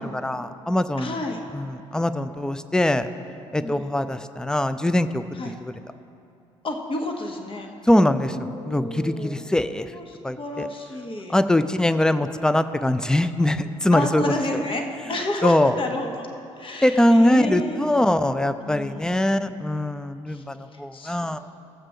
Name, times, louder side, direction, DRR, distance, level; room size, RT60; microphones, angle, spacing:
voice 1, 0.2-1.1 1.5-3.1 3.5-5.2 5.6-5.7 7.9-8.4 8.6-9.9 10.2-10.7 11.3-14.2 15.4-15.7 16.8-21.4, left 1 dB, 5° left, 12 dB, 0.4 m, -22 dB
voice 2, 1.0-1.4 3.6-4.0 5.3-5.5 6.6-7.7 8.2-9.4 9.8-11.4 13.9-16.3 16.6-18.1 18.6-19.7 20.3-20.4 20.7-21.4, left 2 dB, 35° left, 3 dB, 1.3 m, -31 dB
16.0 x 7.4 x 3.3 m, 2.6 s
hypercardioid pair, 50°, 16 cm